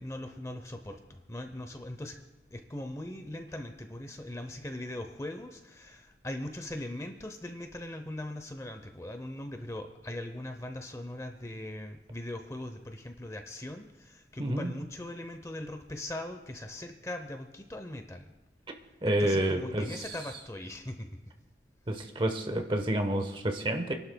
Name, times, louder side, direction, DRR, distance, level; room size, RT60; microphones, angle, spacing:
voice 1, 0.0-2.2 2.5-18.3 19.0-21.1, left 1 dB, 15° left, 6 dB, 0.7 m, -40 dB
voice 2, 14.4-14.8 19.0-20.1 21.9-23.9, right 1 dB, 30° right, 6 dB, 1.0 m, -29 dB
28.5 x 11.5 x 2.3 m, 1.0 s
head